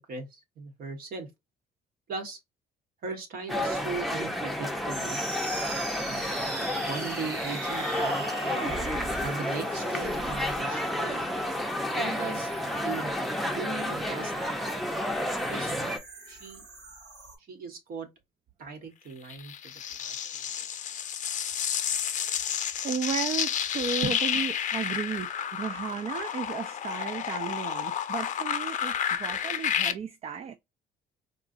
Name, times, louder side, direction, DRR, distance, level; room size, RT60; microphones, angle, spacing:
voice 1, 0.1-1.3 2.1-2.4 3.0-5.2 6.0-8.8 9.2-11.3 12.0-12.5 12.8-13.1 13.4-14.9 15.5-16.0 16.3-16.6 17.5-18.1 18.6-19.7 20.0-20.7 24.0-24.1, right 4 dB, 60° right, 1.2 m, -38 dB
sound 1, 3.5-16.0, left 1 dB, ahead, 0.6 m, -31 dB
sound 2, 4.9-17.4, right 3 dB, 90° right, 2.1 m, -41 dB
sound 3, 19.3-29.9, left 9 dB, 45° left, 0.5 m, -31 dB
voice 2, 22.8-30.5, right 6 dB, 35° right, 0.3 m, -34 dB
3.8 x 2.3 x 2.5 m
cardioid pair, 110°, 17 cm